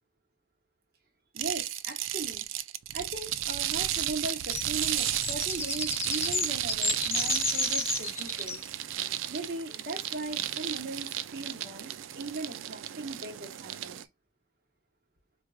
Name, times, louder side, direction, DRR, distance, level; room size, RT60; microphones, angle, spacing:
voice 1, 1.3-2.4 2.9-8.6 9.3-14.0, right 3 dB, 50° right, 1.0 m, -38 dB
sound 1, 1.4-14.0, right 12 dB, 90° right, 0.4 m, -33 dB
sound 2, 3.6-8.7, left 4 dB, 15° left, 0.4 m, -33 dB
4.5 x 2.5 x 2.3 m
head